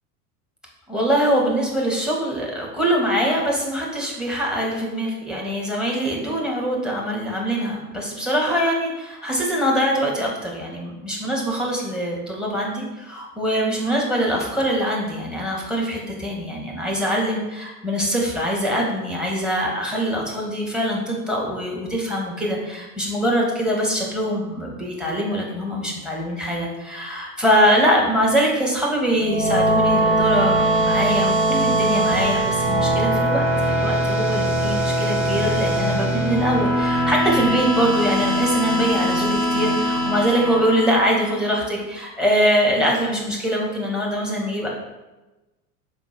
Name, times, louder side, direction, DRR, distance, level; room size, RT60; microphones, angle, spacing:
voice 1, 0.9-44.7, equal, ahead, -2 dB, 2.1 m, -23 dB
sound 1, 29.1-41.5, right 1 dB, 25° right, 1.6 m, -21 dB
5.2 x 4.9 x 6.3 m, 1.1 s
figure-of-eight pair, 80°, 44 cm